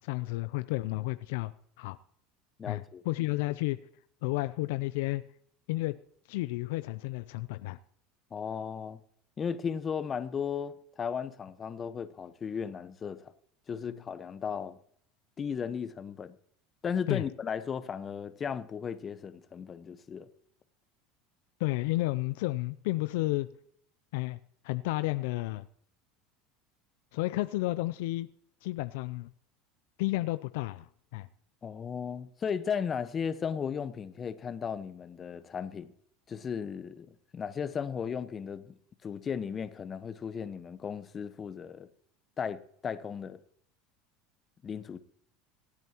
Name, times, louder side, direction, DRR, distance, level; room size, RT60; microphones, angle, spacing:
voice 1, 0.0-1.5 1.8-2.0 2.7-3.8 4.2-5.2 5.7-6.0 6.3-7.8 13.9-14.0 17.1-17.2 21.6-23.5 24.1-24.4 24.6-25.7 27.1-28.3 28.6-29.3 30.0-30.9 31.1-31.3, left 19 dB, 70° left, 0.5 m, -31 dB
voice 2, 2.6-3.0 8.3-9.0 9.4-13.3 13.7-14.8 15.4-16.3 16.8-20.3 31.6-35.9 36.3-37.1 37.3-38.8 39.0-41.9 42.4-43.4 44.6-45.0, left 7 dB, 35° left, 1.1 m, -35 dB
26.5 x 9.1 x 3.0 m
hypercardioid pair, 85°, 0 cm